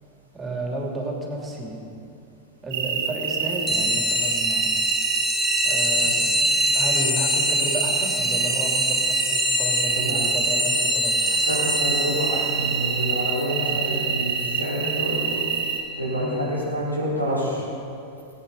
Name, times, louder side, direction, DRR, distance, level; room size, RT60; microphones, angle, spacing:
voice 1, 0.3-1.8 2.6-4.7 5.6-6.4 6.7-11.3 16.2-16.4, right 2 dB, 15° right, -2 dB, 3.0 m, -32 dB
sound 1, 2.7-15.8, right 7 dB, 55° right, 2.0 m, -27 dB
sound 2, 3.7-15.8, left 1 dB, 5° left, 1.0 m, -26 dB
voice 2, 11.2-15.4 16.0-17.7, equal, 90° left, -7 dB, 4.4 m, -28 dB
19.5 x 9.3 x 5.5 m, 2.5 s
figure-of-eight pair, 90°, 0 cm